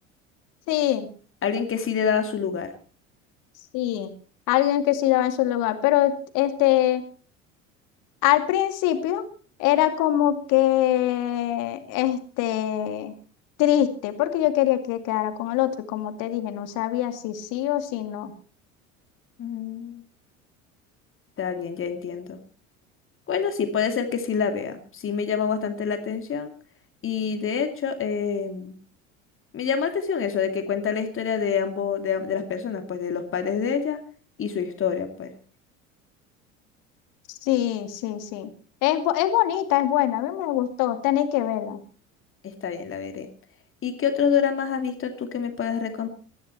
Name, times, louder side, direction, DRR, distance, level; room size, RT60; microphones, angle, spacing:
voice 1, 0.7-1.1 3.7-4.1 4.5-7.0 8.2-9.2 9.6-13.1 13.6-18.3 37.3-38.5 38.8-41.8, left 13 dB, 50° left, 8 dB, 2.5 m, -23 dB
voice 2, 1.4-2.7 19.4-20.0 21.4-22.4 23.3-26.5 27.0-28.7 29.5-34.0 34.4-35.3 42.4-43.3 43.8-46.1, left 7 dB, 30° left, 7 dB, 2.5 m, -27 dB
20.5 x 14.0 x 4.5 m, 0.40 s
figure-of-eight pair, 70°, 40 cm